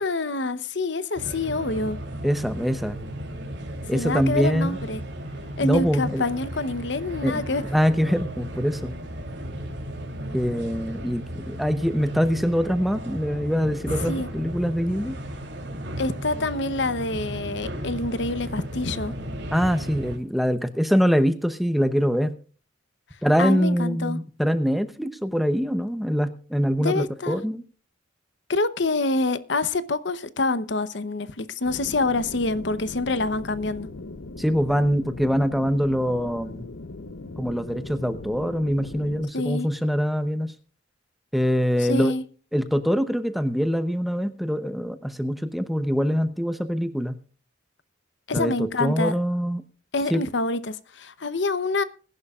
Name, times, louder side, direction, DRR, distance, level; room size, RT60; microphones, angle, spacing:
voice 1, 0.0-2.0 3.9-5.0 5.6-7.6 14.0-14.3 16.0-19.2 23.4-24.2 26.8-27.4 28.5-33.9 39.3-39.7 41.8-42.2 48.3-49.1 49.9-51.8, left 2 dB, 60° left, 0.9 m, -26 dB
sound 1, 1.2-20.2, equal, 60° right, 3.3 m, -35 dB
voice 2, 2.2-3.0 3.9-4.8 5.6-6.2 7.2-8.9 10.3-15.2 19.5-22.3 23.2-27.6 34.4-36.7 37.4-40.5 41.3-42.1 42.5-47.2 48.3-49.6 50.1-50.2, equal, ahead, 0.8 m, -24 dB
sound 2, 31.6-39.3, left 2 dB, 85° left, 0.9 m, -39 dB
21.5 x 11.0 x 2.4 m
head